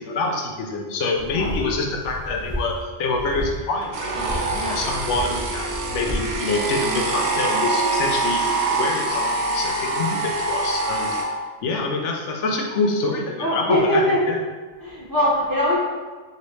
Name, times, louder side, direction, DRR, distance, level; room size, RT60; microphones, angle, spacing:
voice 1, 0.0-8.4 8.7-11.4 11.6-14.4, left 3 dB, 90° left, 2 dB, 0.9 m, -26 dB
sound 1, 1.1-2.8 3.1-3.6 4.1-6.3, left 1 dB, 20° left, 0.7 m, -32 dB
sound 2, 3.9-11.2, right 2 dB, 70° right, 0.8 m, -25 dB
voice 2, 4.5-4.8 13.4-14.2 14.8-15.8, equal, 20° right, -8 dB, 0.9 m, -21 dB
4.0 x 3.1 x 3.1 m, 1.3 s
omnidirectional pair, 1.2 m